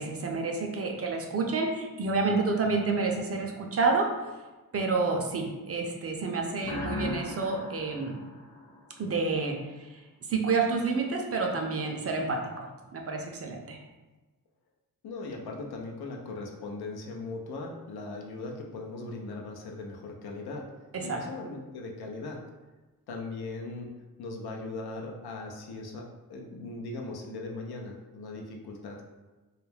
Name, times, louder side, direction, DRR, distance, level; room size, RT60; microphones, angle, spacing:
voice 1, 0.0-4.1 4.7-8.2 9.0-9.9 10.3-13.8 20.9-21.2, right 4 dB, 40° right, 1 dB, 0.5 m, -29 dB
sound 1, 6.6-9.3, left 1 dB, 15° left, 0.6 m, -37 dB
voice 2, 15.0-22.4 23.1-23.9 24.2-29.0, left 3 dB, 80° left, 1 dB, 0.6 m, -39 dB
2.3 x 2.1 x 3.2 m, 1.2 s
cardioid pair, 80°, 38 cm